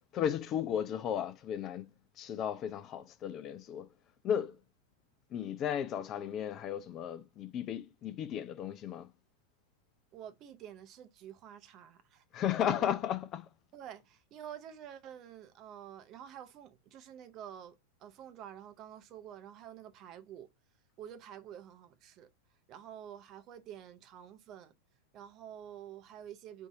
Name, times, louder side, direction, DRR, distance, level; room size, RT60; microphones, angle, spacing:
voice 1, 0.1-1.9 2.2-3.9 4.2-4.6 5.3-9.1 12.3-13.5, left 9 dB, 30° left, 0.4 m, -34 dB
voice 2, 10.1-12.9 13.7-20.5 21.0-22.3 22.7-24.7 25.1-26.7, right 9 dB, 35° right, 0.7 m, -49 dB
4.7 x 2.6 x 3.8 m
figure-of-eight pair, 90°, 0 cm